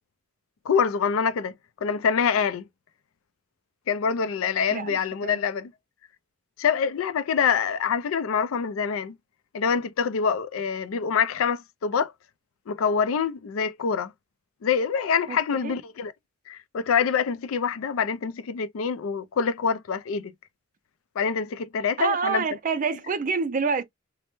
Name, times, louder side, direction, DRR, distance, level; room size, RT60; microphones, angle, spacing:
voice 1, 0.7-1.5 1.8-2.6 3.9-5.7 6.6-9.2 9.5-12.1 12.7-14.1 14.6-16.1 16.5-20.3 21.2-22.4, left 6 dB, 85° left, 0.4 m, -25 dB
voice 2, 15.3-15.8 22.0-23.8, right 5 dB, 40° right, 0.4 m, -27 dB
3.2 x 2.1 x 2.9 m
head